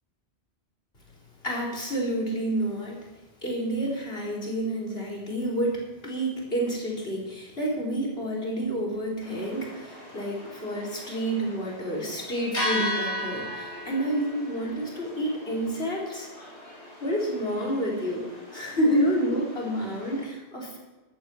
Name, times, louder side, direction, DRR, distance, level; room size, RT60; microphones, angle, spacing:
voice 1, 1.4-3.0 3.4-16.3 17.0-18.3 18.5-20.8, right 1 dB, 65° left, -2 dB, 4.4 m, -29 dB
sound 1, 9.2-20.2, left 1 dB, 85° left, 5.2 m, -37 dB
14.5 x 12.0 x 6.0 m, 1.2 s
omnidirectional pair, 1.1 m